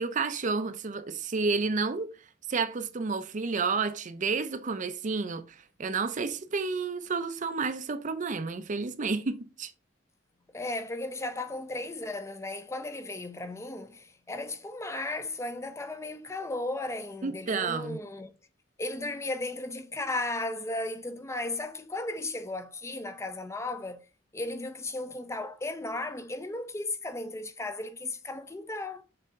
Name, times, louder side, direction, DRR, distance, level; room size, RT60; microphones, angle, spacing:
voice 1, 0.0-2.1 2.5-9.7 17.2-18.0, right 4 dB, 40° right, 0.5 m, -30 dB
voice 2, 10.5-18.3 18.8-24.0 24.3-29.0, left 2 dB, 15° left, 0.5 m, -35 dB
6.8 x 4.2 x 3.6 m
head